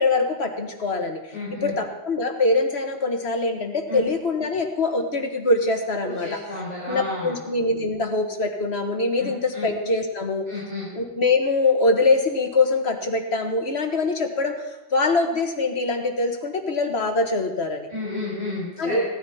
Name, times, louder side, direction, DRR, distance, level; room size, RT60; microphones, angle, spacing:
voice 1, 0.0-1.2 1.6-6.3 6.9-10.5 11.0-17.9 18.8-19.1, left 3 dB, 80° left, 4 dB, 1.9 m, -23 dB
voice 2, 1.3-1.7 3.9-4.0 6.0-7.4 9.2-9.7 10.5-10.9 17.9-19.0, left 2 dB, 40° right, -9 dB, 5.8 m, -32 dB
17.5 x 13.5 x 4.3 m, 1.0 s
omnidirectional pair, 1.1 m